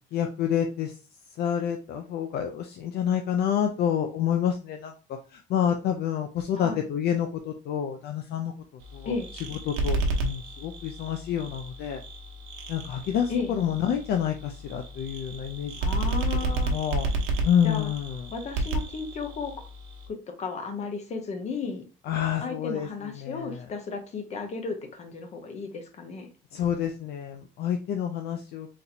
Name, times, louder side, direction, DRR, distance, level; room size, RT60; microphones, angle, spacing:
voice 1, 0.1-0.9 1.4-4.9 5.3-8.5 8.9-9.1 9.5-12.0 12.7-16.0 16.7-17.1 17.4-18.3 22.1-23.6 26.5-28.7, left 9 dB, 55° left, 5 dB, 0.5 m, -28 dB
sound 1, 8.8-20.1, right 2 dB, 85° right, 0.9 m, -32 dB
voice 2, 15.8-16.7 17.6-17.9 18.3-19.5 20.1-21.8 22.4-26.3, left 4 dB, 35° left, 6 dB, 0.8 m, -34 dB
4.1 x 3.0 x 2.7 m, 0.35 s
cardioid pair, 150°, 20 cm